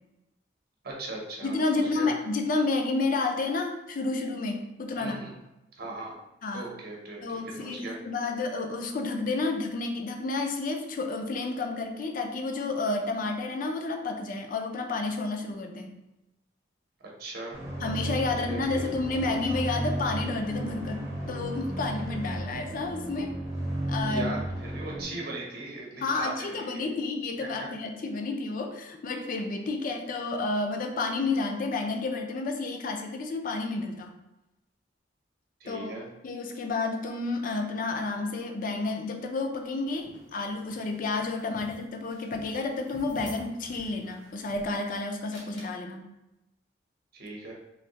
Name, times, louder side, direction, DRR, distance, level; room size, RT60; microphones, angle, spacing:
voice 1, 0.8-2.1 4.9-5.3 5.8-6.1 6.5-8.0 17.2-17.5 18.2-18.8 24.0-26.9 27.4-27.7 35.6-36.1 41.5-41.7 47.1-47.5, right 2 dB, 55° right, -2 dB, 0.8 m, -39 dB
voice 2, 1.4-5.2 6.4-6.7 7.2-15.9 17.8-23.3 23.9-24.4 26.0-34.1 35.7-36.0 36.2-46.1, left 3 dB, 50° left, 4 dB, 0.4 m, -30 dB
Scary drone, 17.5-25.0, right 1 dB, 15° right, 0.7 m, -33 dB
The Soccer Fans, 39.6-44.9 45.3-45.8, left 1 dB, 75° left, 1.0 m, -49 dB
3.2 x 2.7 x 2.8 m, 0.93 s
head